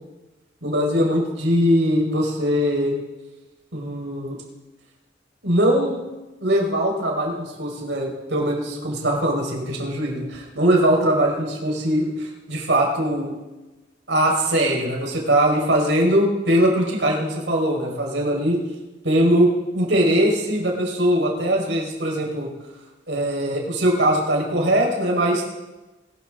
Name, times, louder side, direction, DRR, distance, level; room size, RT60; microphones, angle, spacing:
voice 1, 0.6-2.9 3.7-4.4 5.4-6.0 6.4-13.3 14.1-18.6 19.0-22.5 23.1-25.4, right 1 dB, 85° right, -1 dB, 5.3 m, -21 dB
23.5 x 13.5 x 3.9 m, 1.1 s
head